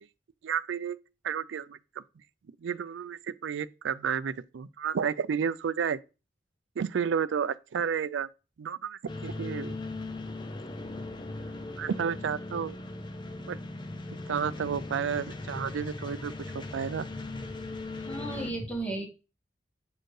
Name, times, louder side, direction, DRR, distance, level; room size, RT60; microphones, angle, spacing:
voice 1, 0.4-1.0 1.2-1.8 2.6-6.0 6.8-8.3 8.6-9.8 11.8-12.8 13.5-13.6 14.3-17.1, right 7 dB, 85° right, 0.4 m, -31 dB
sound 1, 9.1-18.5, left 2 dB, 25° left, 0.5 m, -39 dB
voice 2, 18.0-19.1, right 2 dB, 10° left, 1.4 m, -34 dB
7.8 x 4.4 x 3.2 m
head